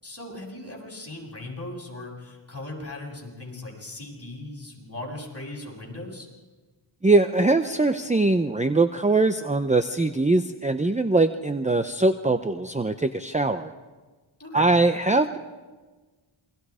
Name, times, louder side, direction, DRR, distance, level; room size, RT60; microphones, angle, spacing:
voice 1, 0.0-6.3 14.4-14.8, left 2 dB, 30° left, -1 dB, 7.3 m, -38 dB
voice 2, 7.0-13.7 14.5-15.4, right 2 dB, 15° right, 9 dB, 0.7 m, -22 dB
28.0 x 23.0 x 5.0 m, 1.3 s
wide cardioid pair, 80°, 50 cm